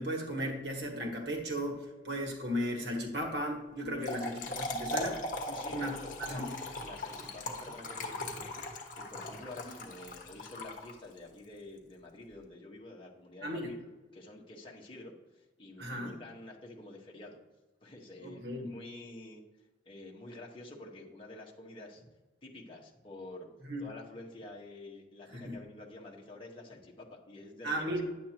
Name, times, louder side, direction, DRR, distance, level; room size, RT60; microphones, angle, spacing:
voice 1, 0.0-5.2 5.7-5.9 6.3-6.5 13.4-13.7 15.8-16.1 18.2-18.7 23.7-23.9 25.3-25.6 27.6-28.0, equal, 65° right, 1 dB, 1.7 m, -35 dB
Trickle dribble / Fill (with liquid), 3.8-11.3, left 1 dB, 45° left, 1.4 m, -39 dB
voice 2, 3.9-4.2 5.4-6.4 6.8-8.6 9.0-13.8 14.1-17.4 17.8-19.4 19.8-22.1 22.4-23.5 23.8-28.0, left 2 dB, 30° left, -2 dB, 1.5 m, -49 dB
10.0 x 8.5 x 3.0 m, 1.2 s
head